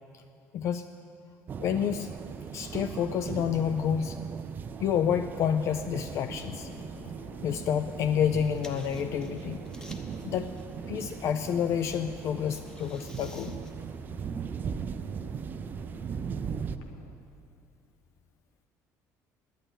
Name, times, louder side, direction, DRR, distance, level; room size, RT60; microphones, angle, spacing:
voice 1, 0.5-0.9 1.6-2.1 2.5-4.2 4.8-6.7 7.4-9.6 10.2-10.5 10.9-13.6, left 8 dB, 50° left, 9 dB, 0.4 m, -29 dB
sound 1, 1.5-16.8, right 6 dB, 30° right, 0.4 m, -38 dB
sound 2, 6.1-17.1, left 2 dB, 90° left, 1.1 m, -51 dB
sound 3, 8.2-13.7, left 1 dB, 10° left, 0.8 m, -54 dB
10.0 x 9.1 x 9.9 m, 2.5 s
cardioid pair, 150°, 6 cm